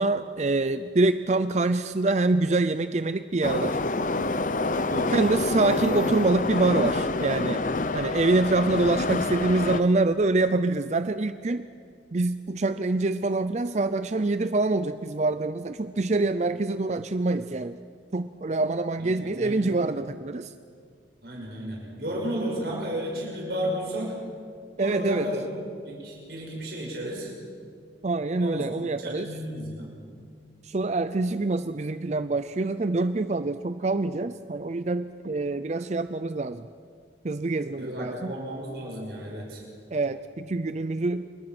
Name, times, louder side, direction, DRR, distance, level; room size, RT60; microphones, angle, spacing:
voice 1, 0.0-3.8 5.1-7.6 7.9-11.7 12.1-17.8 18.1-20.5 24.8-25.3 28.0-29.3 30.6-36.7 37.2-38.3 39.9-41.3, right 2 dB, 40° right, 11 dB, 0.5 m, -25 dB
Subway metro underground, 3.4-9.8, left 3 dB, 45° left, 0.8 m, -27 dB
voice 2, 4.9-5.3 19.0-19.7 21.2-24.1 24.8-25.4 25.8-27.3 28.4-28.6 29.0-29.9 37.8-39.6, equal, 60° right, -2 dB, 6.3 m, -33 dB
28.5 x 23.0 x 6.1 m, 2.2 s
head